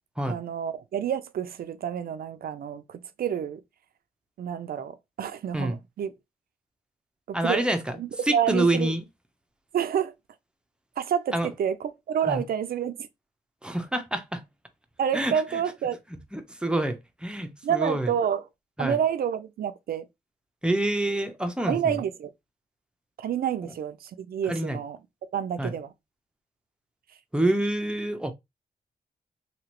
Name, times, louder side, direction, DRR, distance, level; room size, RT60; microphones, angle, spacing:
voice 1, 0.3-3.6 4.4-6.1 7.3-7.7 8.0-8.9 9.7-10.1 11.0-13.1 15.0-16.0 17.6-18.4 18.8-20.1 21.7-22.3 23.2-25.0 25.3-25.9, right 8 dB, 70° right, 0.5 m, -29 dB
voice 2, 7.3-8.0 8.3-9.0 11.3-11.5 12.3-12.4 13.6-14.4 15.1-15.4 16.3-18.1 18.8-19.0 20.6-21.9 24.5-24.8 25.6-25.7 27.3-28.3, right 1 dB, 5° right, 0.8 m, -27 dB
3.0 x 2.9 x 3.0 m
cardioid pair, 60°, 16 cm